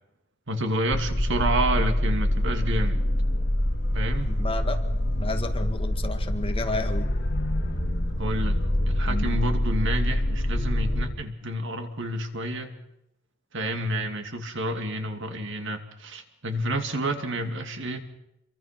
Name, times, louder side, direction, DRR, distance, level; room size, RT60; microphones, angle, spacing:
voice 1, 0.5-3.0 3.9-4.4 8.2-8.6 8.9-12.7 13.5-18.0, right 1 dB, 60° right, 6 dB, 2.5 m, -29 dB
sound 1, 0.9-11.1, left 1 dB, 55° left, 3.7 m, -25 dB
voice 2, 4.3-4.8 5.2-7.1, left 2 dB, 25° left, 6 dB, 1.9 m, -31 dB
27.0 x 24.0 x 6.0 m, 0.88 s
head